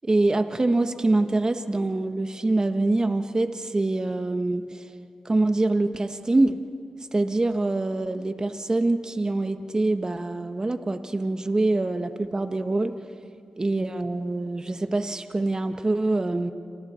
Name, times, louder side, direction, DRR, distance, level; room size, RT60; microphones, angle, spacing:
voice 1, 0.0-4.9 5.2-6.6 7.1-12.9 13.6-16.5, right 2 dB, 35° right, 8 dB, 1.3 m, -25 dB
28.5 x 26.5 x 4.4 m, 2.3 s
cardioid pair, 50°, 2 cm